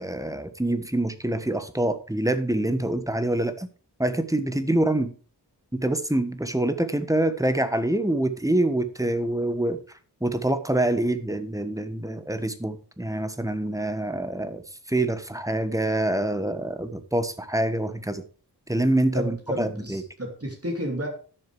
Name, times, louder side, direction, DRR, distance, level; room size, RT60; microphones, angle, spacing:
voice 1, 0.0-3.7 4.0-5.1 5.7-9.8 10.2-14.6 14.9-18.2 18.7-20.0, right 1 dB, 10° right, 10 dB, 1.3 m, -25 dB
voice 2, 19.1-21.1, equal, 35° right, 1 dB, 2.7 m, -31 dB
11.5 x 6.8 x 4.8 m, 0.39 s
wide cardioid pair, 50°, 40 cm